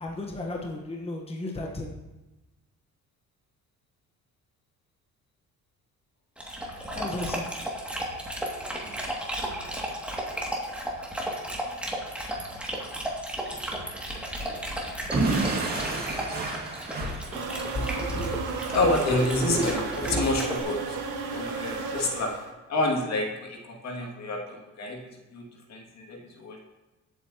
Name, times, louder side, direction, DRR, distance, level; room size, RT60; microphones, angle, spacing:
voice 1, 0.0-1.9 6.9-7.4 13.5-13.6, left 2 dB, 20° left, 0 dB, 1.3 m, -34 dB
Dog, 6.4-20.6, right 1 dB, 5° right, 2.4 m, -34 dB
Explosion / Shatter, 15.1-17.9, right 3 dB, 30° right, 2.2 m, -29 dB
sound 1, 17.3-22.5, right 4 dB, 75° right, 1.9 m, -33 dB
voice 2, 17.7-18.4 18.7-21.0 21.3-22.3 22.7-25.0 25.3-26.6, left 2 dB, 60° left, 0 dB, 2.4 m, -28 dB
22.0 x 8.4 x 3.0 m, 1.1 s
cardioid pair, 115°, 31 cm